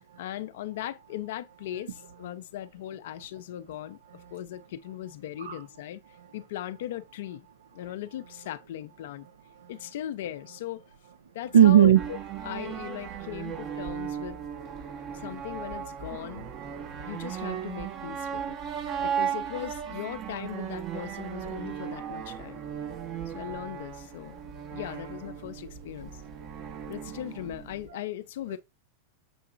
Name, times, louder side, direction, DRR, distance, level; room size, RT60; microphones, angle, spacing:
voice 1, 0.2-4.0 4.3-6.0 6.3-7.5 7.7-9.3 9.7-10.8 11.3-12.2 12.4-14.4 15.1-16.5 17.0-18.6 19.0-22.6 23.3-24.4 24.7-26.2 26.9-28.6, left 12 dB, 70° left, 0.5 m, -38 dB
voice 2, 11.5-12.0 15.1-15.2 16.7-17.1 18.6-19.0 22.9-23.0 24.5-24.8 26.4-26.9 27.9-28.0, right 10 dB, 85° right, 0.5 m, -22 dB
sound 1, 11.9-27.9, right 8 dB, 40° right, 0.8 m, -36 dB
6.8 x 2.9 x 2.4 m
hypercardioid pair, 105°, 0 cm